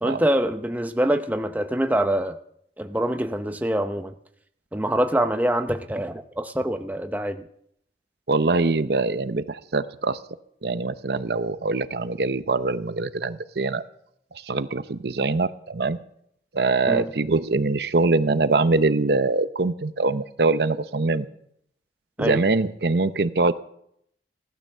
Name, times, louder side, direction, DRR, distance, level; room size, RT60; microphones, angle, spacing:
voice 1, 0.0-2.4 2.8-4.1 4.7-7.4 16.9-17.1 22.2-22.4, right 1 dB, 10° right, 7 dB, 0.7 m, -25 dB
voice 2, 8.3-10.2 10.6-13.8 14.4-16.0 16.5-21.3 22.2-23.5, right 3 dB, 60° right, 12 dB, 0.7 m, -23 dB
16.5 x 12.5 x 6.6 m, 0.72 s
head